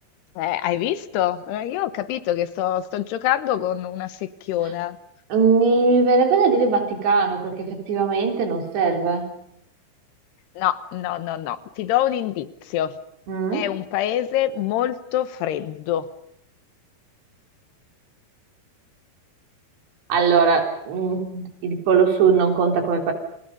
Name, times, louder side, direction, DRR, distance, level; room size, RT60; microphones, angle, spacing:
voice 1, 0.4-5.0 10.6-13.0 13.5-16.1, left 12 dB, 75° left, 12 dB, 3.2 m, -25 dB
voice 2, 5.3-9.3 13.3-13.7 20.1-23.1, right 5 dB, 80° right, 3 dB, 5.9 m, -20 dB
30.0 x 27.0 x 5.4 m, 0.77 s
omnidirectional pair, 4.9 m